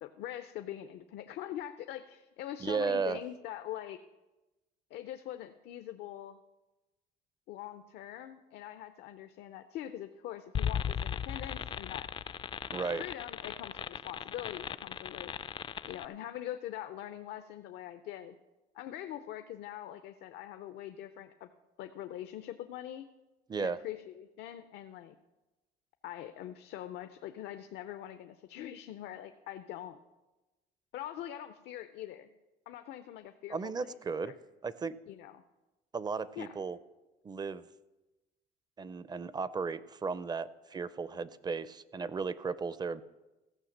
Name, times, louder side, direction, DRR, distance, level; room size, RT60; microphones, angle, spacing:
voice 1, 0.0-4.0 4.9-6.4 7.5-12.1 12.8-15.3 15.9-18.4 18.7-21.5 21.8-23.1 23.6-25.2 26.0-30.0 30.9-32.3 32.7-34.0 34.2-34.4 35.1-35.4 36.4-36.5, left 12 dB, 80° left, 9 dB, 0.6 m, -43 dB
voice 2, 2.6-3.2 12.7-13.0 23.5-23.8 33.5-34.3 34.6-34.9 35.9-36.8 37.2-37.7 38.8-43.0, right 5 dB, 25° right, 16 dB, 0.5 m, -35 dB
sound 1, 10.5-16.0, left 8 dB, 30° left, 0.3 m, -37 dB
15.5 x 5.7 x 7.2 m, 1.1 s
cardioid pair, 110°, 17 cm